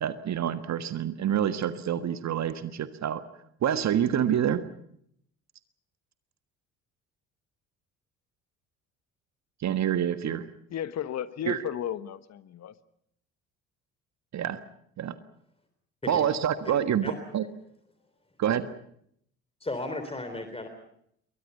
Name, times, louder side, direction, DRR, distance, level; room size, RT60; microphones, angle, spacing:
voice 1, 0.0-3.2 3.6-4.6 9.6-10.5 11.4-11.6 14.3-14.6 15.0-15.1 16.1-17.5 18.4-18.6, right 9 dB, 40° right, 11 dB, 1.5 m, -27 dB
voice 2, 10.7-12.7, left 10 dB, 40° left, 14 dB, 1.4 m, -34 dB
voice 3, 19.6-20.7, left 2 dB, 15° left, 7 dB, 3.6 m, -34 dB
28.5 x 23.0 x 5.6 m, 0.70 s
figure-of-eight pair, 55°, 41 cm